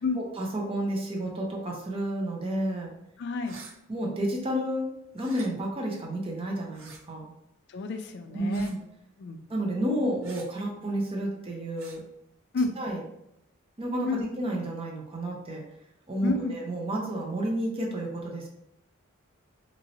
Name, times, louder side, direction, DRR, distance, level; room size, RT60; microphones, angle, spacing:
voice 1, 0.2-2.9 3.9-4.9 5.1-7.3 8.3-8.8 9.5-12.0 12.6-13.0 13.8-15.6 16.1-18.5, right 1 dB, 25° right, -1 dB, 0.6 m, -31 dB
voice 2, 3.2-3.6 7.7-8.7 9.2-9.4 12.5-12.7 14.1-14.2 16.2-16.5, left 3 dB, 55° left, 6 dB, 0.4 m, -30 dB
sound 1, 3.4-3.7 5.1-5.5 6.7-7.0 8.5-8.8 10.2-10.5 11.8-12.0, right 4 dB, 65° right, 0.6 m, -47 dB
3.0 x 2.8 x 2.7 m, 0.79 s
head